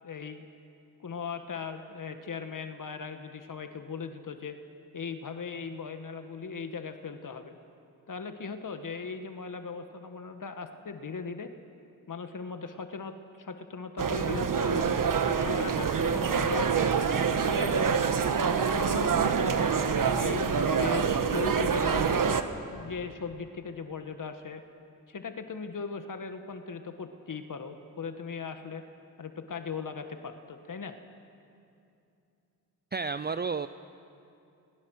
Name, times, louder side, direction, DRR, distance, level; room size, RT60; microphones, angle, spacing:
voice 1, 0.0-0.4 1.0-4.6 4.9-7.6 8.1-11.5 12.1-15.0 15.4-16.7 17.3-18.3 18.7-22.3 22.7-24.6 25.1-28.8 29.2-31.0, left 5 dB, 55° left, 7 dB, 1.5 m, -38 dB
sound 1, 14.0-22.4, right 6 dB, 60° right, 1.5 m, -26 dB
voice 2, 32.9-33.7, right 5 dB, 25° right, 12 dB, 0.7 m, -31 dB
27.5 x 21.5 x 6.4 m, 2.6 s
cardioid pair, 55°, 37 cm